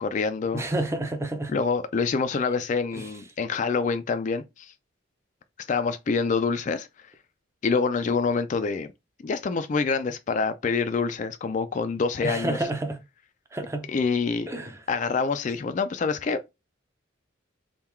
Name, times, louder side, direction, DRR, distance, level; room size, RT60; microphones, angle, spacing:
voice 1, 0.0-0.6 1.5-4.7 5.6-7.1 7.6-8.9 9.2-12.6 13.9-14.5 14.9-16.5, left 4 dB, 40° left, 0.3 m, -26 dB
voice 2, 0.5-1.6 2.9-3.1 12.2-13.0 13.5-13.9 14.5-14.8, right 1 dB, 15° right, 0.5 m, -29 dB
3.6 x 2.3 x 4.3 m
head